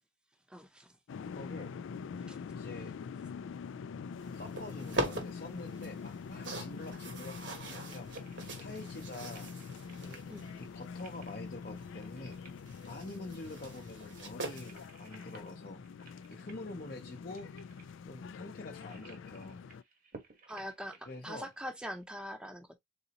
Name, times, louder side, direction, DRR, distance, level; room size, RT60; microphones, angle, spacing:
voice 1, 0.5-0.9 2.3-2.4 10.3-10.5 20.5-22.8, equal, 5° right, 0.7 m, -43 dB
sound 1, 1.1-19.8, left 5 dB, 75° left, 0.3 m, -45 dB
voice 2, 1.3-1.7 2.5-2.9 4.3-8.1 8.6-9.5 10.0-10.2 10.5-12.4 12.9-15.8 16.3-17.5 18.0-19.6 21.1-21.5, left 2 dB, 45° left, 0.7 m, -46 dB
sound 2, 4.2-14.9, right 2 dB, 65° right, 1.5 m, -43 dB
sound 3, 5.4-22.0, right 3 dB, 45° right, 1.2 m, -60 dB
4.0 x 3.9 x 2.8 m
head